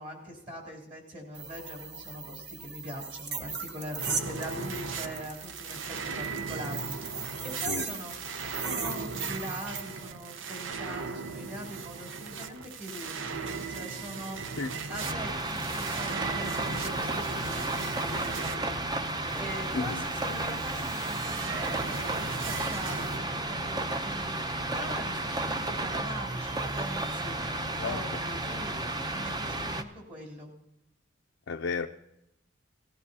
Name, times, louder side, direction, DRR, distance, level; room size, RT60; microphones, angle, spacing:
voice 1, 0.0-30.5, equal, 40° right, 3.1 m, -42 dB
sound 1, 1.3-9.8, right 5 dB, 55° right, 1.1 m, -38 dB
sound 2, 4.0-23.2, right 5 dB, 70° right, 0.7 m, -38 dB
sound 3, 15.0-29.8, right 2 dB, 20° right, 0.6 m, -33 dB
voice 2, 31.5-31.9, left 4 dB, 70° left, 0.5 m, -32 dB
18.0 x 15.0 x 2.8 m
head